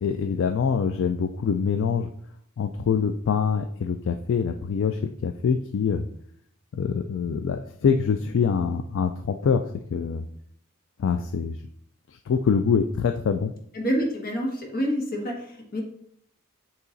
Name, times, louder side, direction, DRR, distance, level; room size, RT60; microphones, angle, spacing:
voice 1, 0.0-2.1 2.6-6.0 6.7-9.6 9.9-10.3 11.0-11.6 12.3-13.5, left 6 dB, 60° left, 7 dB, 0.3 m, -24 dB
voice 2, 13.7-15.8, equal, 45° left, 0 dB, 1.5 m, -27 dB
8.2 x 3.0 x 3.9 m, 0.68 s
head